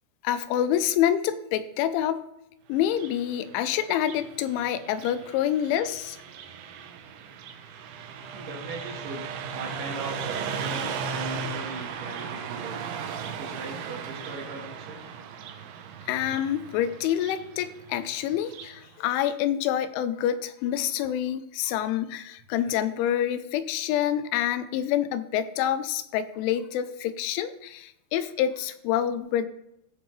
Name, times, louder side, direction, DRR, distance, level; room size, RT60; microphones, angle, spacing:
voice 1, 0.2-2.3 2.7-6.2 16.1-29.5, left 10 dB, 85° left, 12 dB, 3.1 m, -27 dB
Car passing by, 2.8-18.8, right 6 dB, 80° right, 3.4 m, -37 dB
voice 2, 8.3-9.3 9.5-12.9 13.4-15.1, right 3 dB, 60° right, 1 dB, 2.5 m, -39 dB
16.0 x 6.9 x 3.2 m, 0.80 s
omnidirectional pair, 5.4 m